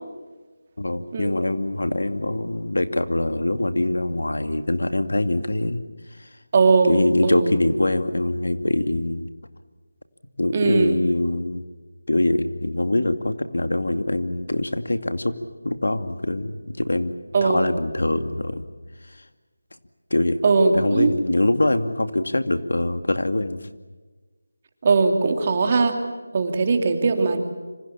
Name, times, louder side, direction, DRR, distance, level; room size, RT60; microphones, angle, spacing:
voice 1, 0.8-5.8 6.1-6.3 6.9-9.3 10.4-11.6 12.1-15.4 15.6-17.1 17.4-18.7 19.0-19.2 20.1-20.4 20.7-23.7, left 2 dB, 85° left, 9 dB, 2.3 m, -23 dB
voice 2, 6.5-7.5 10.5-11.0 17.3-17.7 20.4-21.1 24.8-26.0 26.3-27.4, right 4 dB, 30° right, 5 dB, 2.7 m, -19 dB
26.5 x 26.0 x 7.3 m, 1.2 s
figure-of-eight pair, 175°, 0 cm